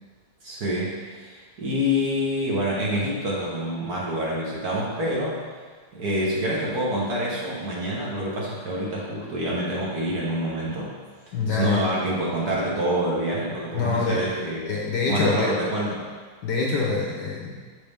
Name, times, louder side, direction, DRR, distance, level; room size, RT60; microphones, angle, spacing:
voice 1, 0.4-5.4 5.9-10.9 11.5-14.7 15.1-16.0, equal, 50° right, -5 dB, 1.5 m, -27 dB
voice 2, 11.3-11.8 13.7-14.3 14.7-15.6 16.4-17.6, left 4 dB, 60° left, -3 dB, 1.2 m, -25 dB
6.6 x 6.2 x 3.4 m, 1.5 s
omnidirectional pair, 2.4 m